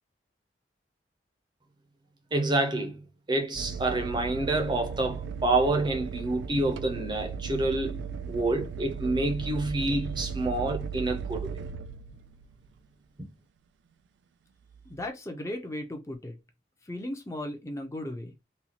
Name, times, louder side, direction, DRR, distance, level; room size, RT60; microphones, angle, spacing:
voice 1, 2.3-3.0 3.3-8.0 8.3-11.6, right 2 dB, 25° right, 0.6 m, -28 dB
sound 1, 3.5-12.7 14.7-15.1, right 6 dB, 90° right, 0.3 m, -37 dB
voice 2, 14.9-16.3 16.9-18.3, left 1 dB, 15° left, 0.5 m, -36 dB
4.1 x 2.3 x 2.8 m
head